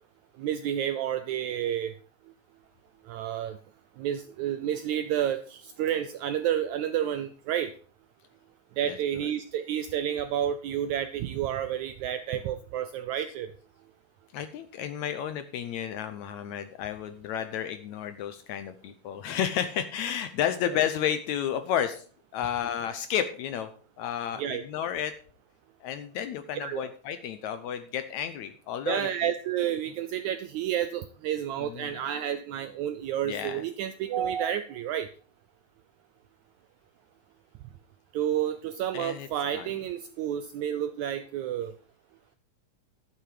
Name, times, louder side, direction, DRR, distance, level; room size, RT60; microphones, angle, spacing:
voice 1, 0.4-1.9 3.0-3.6 4.0-7.7 8.8-13.5 24.4-24.6 26.5-26.9 28.9-35.1 38.1-41.7, right 10 dB, 80° right, 10 dB, 1.7 m, -30 dB
voice 2, 14.3-22.0 22.3-23.7 24.0-25.1 25.8-29.1 31.6-31.9 33.2-33.6 38.9-39.3 39.5-39.7, left 9 dB, 75° left, 10 dB, 1.7 m, -32 dB
11.0 x 8.7 x 4.9 m, 0.42 s
omnidirectional pair, 4.0 m